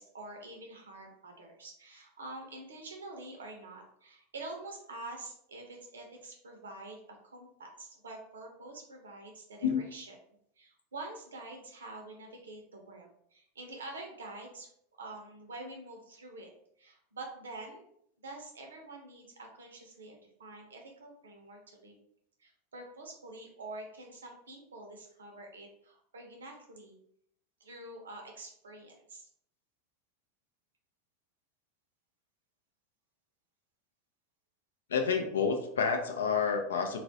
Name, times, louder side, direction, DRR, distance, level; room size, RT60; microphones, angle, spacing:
voice 1, 0.0-10.2 10.6-14.7 15.0-16.5 16.8-17.8 18.2-22.0 22.4-27.0 27.6-29.3, right 2 dB, 90° right, 2 dB, 0.6 m, -47 dB
voice 2, 34.9-37.0, left 6 dB, 85° left, 5 dB, 0.4 m, -29 dB
2.3 x 2.0 x 2.6 m, 0.69 s
hypercardioid pair, 95°, 0 cm